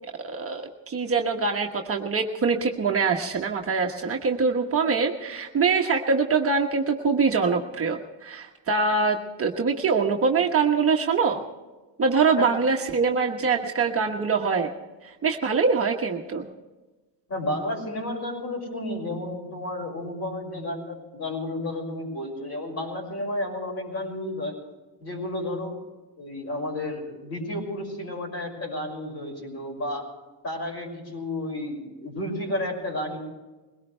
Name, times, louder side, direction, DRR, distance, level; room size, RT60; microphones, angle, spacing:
voice 1, 0.2-11.4 12.0-14.7 15.0-16.5, right 4 dB, 30° right, 1 dB, 1.3 m, -24 dB
voice 2, 17.3-24.6 25.0-25.8 26.2-30.1 30.4-33.2, left 1 dB, 35° left, 1 dB, 6.0 m, -32 dB
22.0 x 18.5 x 3.4 m, 1.2 s
cardioid pair, 125°, 43 cm